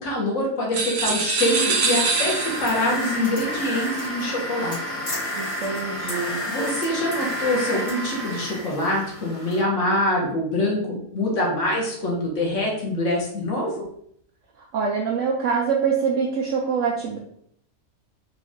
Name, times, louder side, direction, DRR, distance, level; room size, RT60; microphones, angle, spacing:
voice 1, 0.0-4.8 6.4-13.7, left 1 dB, 60° left, -2 dB, 1.5 m, -25 dB
sound 1, 0.7-2.9, right 4 dB, 50° right, 0.5 m, -24 dB
sound 2, 1.4-9.6, equal, 80° left, 2.4 m, -30 dB
voice 2, 5.3-6.4 14.6-17.2, right 5 dB, 70° right, 0 dB, 0.9 m, -25 dB
4.5 x 2.5 x 3.5 m, 0.68 s
omnidirectional pair, 1.5 m